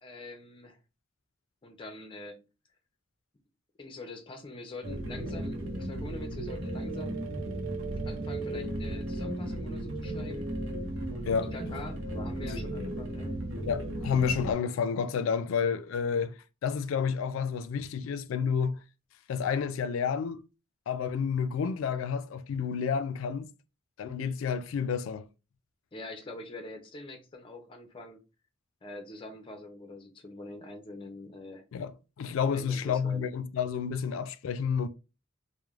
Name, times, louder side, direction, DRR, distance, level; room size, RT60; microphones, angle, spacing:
voice 1, 0.0-0.8 1.6-2.4 3.8-7.2 8.0-10.5 11.1-13.3 25.9-28.2 28.8-31.6 32.5-33.3, left 2 dB, 25° left, 0.5 m, -44 dB
sound 1, 4.8-14.5, right 1 dB, 80° right, 0.7 m, -35 dB
voice 2, 13.7-18.8 19.3-20.4 20.9-23.5 24.0-25.3 31.7-31.9 32.2-34.9, left 6 dB, 85° left, 0.3 m, -30 dB
3.1 x 2.0 x 2.3 m
head